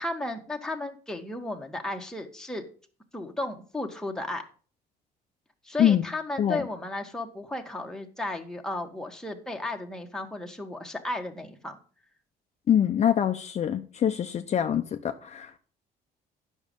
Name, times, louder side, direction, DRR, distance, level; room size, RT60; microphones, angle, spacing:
voice 1, 0.0-2.6 3.1-4.4 5.6-11.8, left 2 dB, 5° left, 1.5 m, -34 dB
voice 2, 12.7-15.6, left 9 dB, 40° left, 0.7 m, -24 dB
9.5 x 6.3 x 5.3 m
cardioid pair, 110°, 17 cm